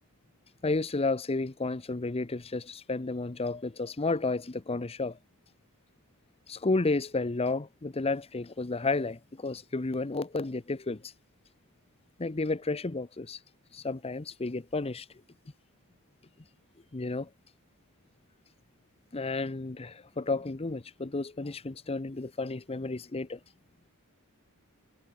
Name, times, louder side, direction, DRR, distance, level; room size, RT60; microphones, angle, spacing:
voice 1, 0.6-5.2 6.5-11.1 12.2-13.4 13.7-15.1 16.9-17.3 19.1-23.4, left 3 dB, 25° left, 0.7 m, -32 dB
head